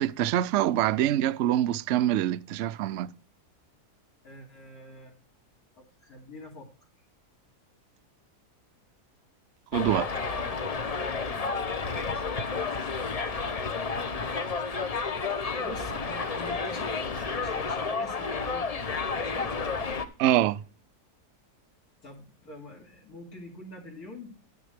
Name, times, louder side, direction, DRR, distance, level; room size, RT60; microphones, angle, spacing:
voice 1, 0.0-3.1 9.7-10.1 20.2-20.6, right 12 dB, 65° right, 0.7 m, -25 dB
voice 2, 4.2-5.2 5.7-6.7 10.6-10.9 15.6-18.9 19.3-19.5 22.0-24.5, left 1 dB, 65° left, 3.2 m, -46 dB
Subway metro underground, 9.7-20.0, left 4 dB, 35° left, 0.6 m, -31 dB
10.5 x 9.4 x 3.4 m
omnidirectional pair, 1.7 m